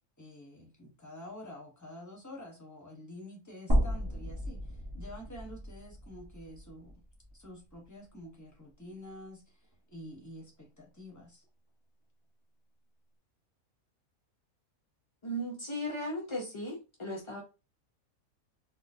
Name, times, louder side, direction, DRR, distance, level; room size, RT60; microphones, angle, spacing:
voice 1, 0.2-6.9 7.3-11.5, left 1 dB, 15° left, 0.8 m, -48 dB
sound 1, 3.7-7.8 8.2-8.3 9.7-9.8, equal, 20° right, 0.8 m, -33 dB
voice 2, 15.2-17.4, equal, 40° left, 0.4 m, -36 dB
4.0 x 2.3 x 2.6 m
omnidirectional pair, 1.5 m